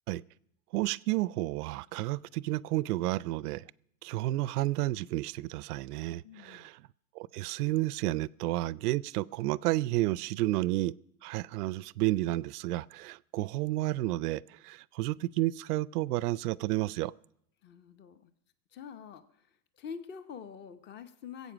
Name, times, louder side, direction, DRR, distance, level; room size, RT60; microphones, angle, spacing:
voice 1, 0.7-3.6 4.0-6.8 7.1-11.0 11.2-17.1, right 17 dB, 65° right, 0.5 m, -31 dB
voice 2, 6.2-6.7 17.6-18.3 18.7-19.5 19.8-21.5, left 7 dB, 20° left, 0.8 m, -46 dB
21.0 x 8.2 x 6.1 m
hypercardioid pair, 125°, 49 cm